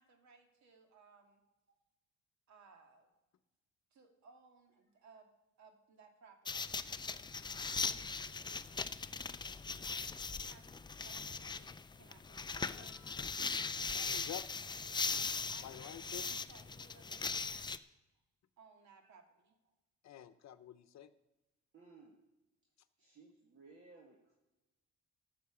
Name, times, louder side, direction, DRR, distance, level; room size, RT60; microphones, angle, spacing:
voice 1, 0.0-1.4 2.5-3.1 3.9-5.3 5.6-6.7 10.1-13.3 13.8-14.1 15.5-17.7 18.6-19.6, right 4 dB, 70° right, 4 dB, 2.0 m, -62 dB
sound 1, 6.4-17.8, left 4 dB, 15° left, 0.3 m, -40 dB
voice 2, 12.6-14.4 15.6-16.3 20.0-21.1, left 11 dB, 65° left, 12 dB, 0.8 m, -50 dB
voice 3, 21.7-22.2 23.0-24.4, right 3 dB, 45° right, -1 dB, 1.8 m, -60 dB
14.0 x 5.9 x 7.1 m, 1.0 s
cardioid pair, 120°, 30 cm